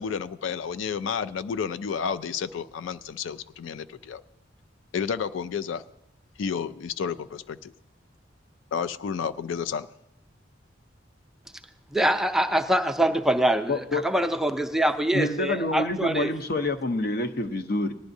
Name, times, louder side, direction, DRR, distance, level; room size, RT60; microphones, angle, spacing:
voice 1, 0.0-4.2 4.9-5.8 6.4-7.7 8.7-9.9, left 6 dB, 85° left, 13 dB, 0.4 m, -31 dB
voice 2, 11.9-16.3, right 1 dB, ahead, 5 dB, 0.5 m, -24 dB
voice 3, 13.7-14.1 15.1-17.9, left 2 dB, 55° left, 9 dB, 0.7 m, -27 dB
19.5 x 11.0 x 2.7 m, 0.88 s
head